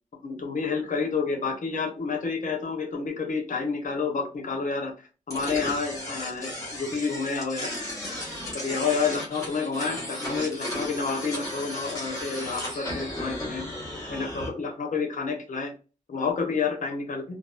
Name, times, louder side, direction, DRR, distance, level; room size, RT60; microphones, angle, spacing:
voice 1, 0.2-4.9 5.3-7.7 8.5-13.6 14.1-15.7 16.1-17.2, left 5 dB, 70° left, 3 dB, 0.8 m, -29 dB
sound 1, 5.3-14.5, left 1 dB, 25° left, 1.2 m, -35 dB
2.8 x 2.3 x 2.3 m, 0.34 s
wide cardioid pair, 170°, 14 cm